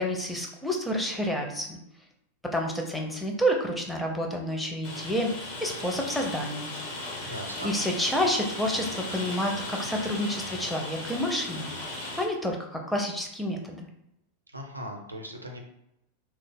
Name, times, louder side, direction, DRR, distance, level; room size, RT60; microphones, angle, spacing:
voice 1, 0.0-1.8 2.5-6.7 7.2-7.3 7.6-11.7 12.2-13.9, equal, 5° left, 1 dB, 0.5 m, -29 dB
Rain, 4.8-12.3, left 2 dB, 45° left, 0.8 m, -37 dB
voice 2, 7.2-7.7 14.5-15.6, equal, 80° right, 2 dB, 0.5 m, -38 dB
2.9 x 2.0 x 3.3 m, 0.83 s
figure-of-eight pair, 90°, 0 cm